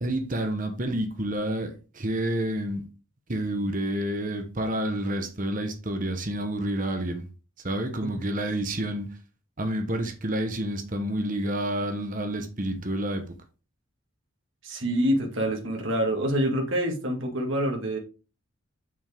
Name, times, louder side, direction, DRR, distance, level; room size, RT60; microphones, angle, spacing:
voice 1, 0.0-2.8 3.3-7.3 7.6-9.1 9.6-13.3, right 1 dB, 40° right, 1.1 m, -29 dB
voice 2, 14.6-18.0, equal, 65° right, 2.1 m, -26 dB
7.3 x 6.0 x 3.6 m
head